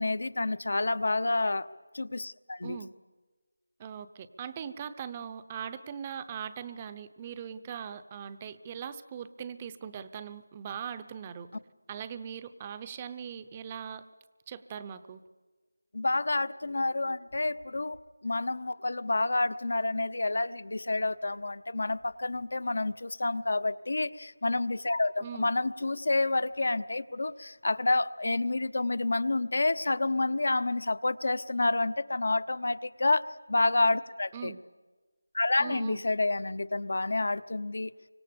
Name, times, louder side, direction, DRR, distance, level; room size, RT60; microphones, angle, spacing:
voice 1, 0.0-1.7 1.9-2.8 15.9-18.0 18.2-34.5 35.3-37.9, left 2 dB, 65° left, 14 dB, 0.9 m, -29 dB
voice 2, 3.8-11.5 11.9-14.1 14.5-15.2 25.2-25.5 34.3-34.6 35.6-36.0, right 8 dB, 15° right, 12 dB, 0.7 m, -40 dB
29.5 x 25.0 x 7.0 m, 1.3 s
figure-of-eight pair, 170°, 0 cm